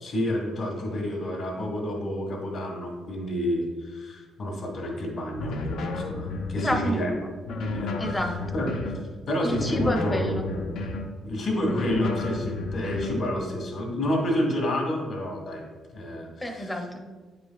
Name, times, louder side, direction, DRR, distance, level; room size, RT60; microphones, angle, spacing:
voice 1, 0.0-7.1 7.6-8.2 8.5-8.7 9.3-10.7 11.2-15.6 15.9-16.7, left 1 dB, 50° left, 0 dB, 1.6 m, -29 dB
sound 1, 5.4-6.9 7.4-9.0 9.5-11.1 11.6-13.2, left 3 dB, 80° left, 0.7 m, -32 dB
voice 2, 6.6-7.0 8.0-8.6 9.4-10.5 16.4-17.3, equal, 10° left, 3 dB, 0.6 m, -29 dB
9.0 x 5.0 x 2.3 m, 1.4 s
cardioid pair, 150°, 0 cm